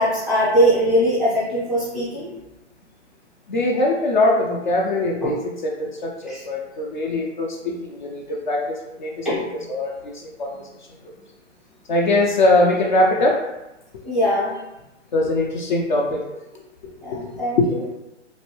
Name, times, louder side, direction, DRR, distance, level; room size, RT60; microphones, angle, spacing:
voice 1, 0.0-2.4 5.2-5.3 6.2-6.4 9.2-9.4 14.0-14.6 17.0-17.8, equal, ahead, -10 dB, 0.6 m, -21 dB
voice 2, 3.5-9.3 9.7-10.7 11.9-13.4 15.1-16.2 17.1-17.7, left 2 dB, 40° left, -1 dB, 0.5 m, -22 dB
3.1 x 2.6 x 2.9 m, 0.97 s
hypercardioid pair, 150°, 36 cm